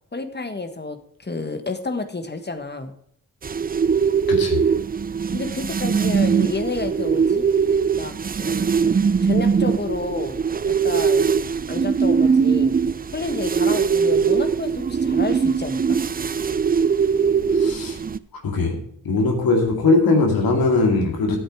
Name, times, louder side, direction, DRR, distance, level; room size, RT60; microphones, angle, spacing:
voice 1, 0.1-2.9 5.3-7.5 7.9-8.8 9.2-10.4 10.6-11.3 11.7-12.7 13.1-16.0, left 3 dB, 30° left, 9 dB, 1.5 m, -30 dB
sound 1, 3.4-18.2, right 6 dB, 25° right, 0.4 m, -21 dB
voice 2, 4.3-4.6 17.5-18.0 18.4-18.8 19.0-21.4, left 3 dB, 75° left, 2 dB, 2.3 m, -20 dB
9.7 x 8.0 x 4.8 m, 0.68 s
supercardioid pair, 45°, 35 cm